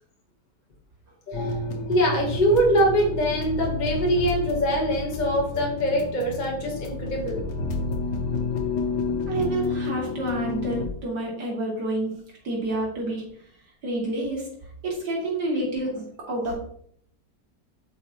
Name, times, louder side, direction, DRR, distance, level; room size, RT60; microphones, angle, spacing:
sound 1, 1.3-10.9, left 3 dB, 80° left, 1.6 m, -30 dB
voice 1, 1.3-7.4 8.2-8.3, equal, 30° left, -1 dB, 1.1 m, -24 dB
voice 2, 9.3-12.1 12.4-13.2 13.8-14.5 14.8-16.5, right 2 dB, 70° right, -2 dB, 2.9 m, -28 dB
7.9 x 5.6 x 2.9 m, 0.64 s
omnidirectional pair, 1.8 m